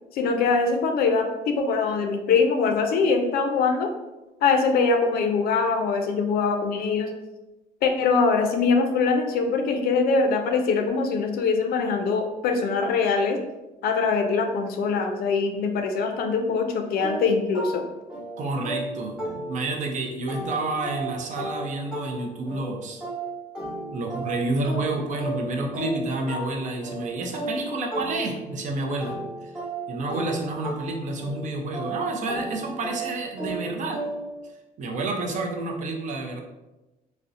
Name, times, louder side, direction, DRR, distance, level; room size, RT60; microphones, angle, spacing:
voice 1, 0.1-3.9 4.4-7.1 7.8-13.4 13.8-17.8, left 4 dB, 65° left, 5 dB, 0.4 m, -23 dB
sound 1, 17.0-19.9 20.3-28.6 29.0-34.4, right 2 dB, 5° right, 1.0 m, -35 dB
voice 2, 18.4-23.0 23.9-29.1 29.4-29.5 29.9-34.0 34.8-36.4, right 2 dB, 45° right, 1 dB, 0.5 m, -29 dB
2.6 x 2.0 x 2.4 m, 1.0 s
cardioid pair, 110°, 17 cm